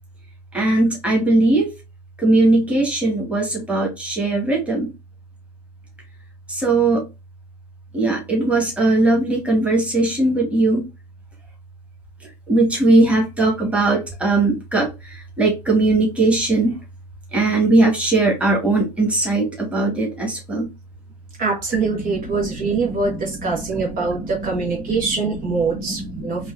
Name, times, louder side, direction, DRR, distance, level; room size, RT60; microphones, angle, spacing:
voice 1, 0.5-1.7 2.2-4.9 6.5-7.1 7.9-10.9 12.5-16.7 17.3-20.7 22.0-25.2 25.7-26.5, right 2 dB, 5° right, 2.0 m, -20 dB
voice 2, 21.4-26.5, right 4 dB, 45° right, 1.6 m, -24 dB
4.5 x 2.7 x 2.5 m
figure-of-eight pair, 75°, 21 cm